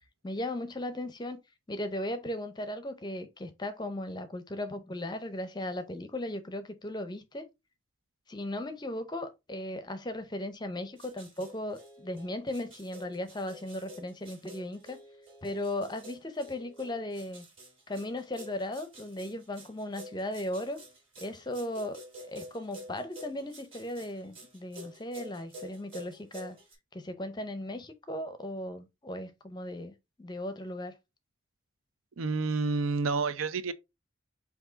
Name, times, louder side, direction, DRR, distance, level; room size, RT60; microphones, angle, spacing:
voice 1, 0.2-1.4 1.7-7.5 8.3-15.0 15.4-17.4 17.9-20.8 21.2-22.0 22.3-26.6 26.9-30.9, left 1 dB, 20° left, 0.5 m, -37 dB
sound 1, 10.7-26.8, equal, 25° right, 2.0 m, -49 dB
voice 2, 32.2-33.7, right 4 dB, 90° right, 0.5 m, -29 dB
4.6 x 2.7 x 3.8 m
head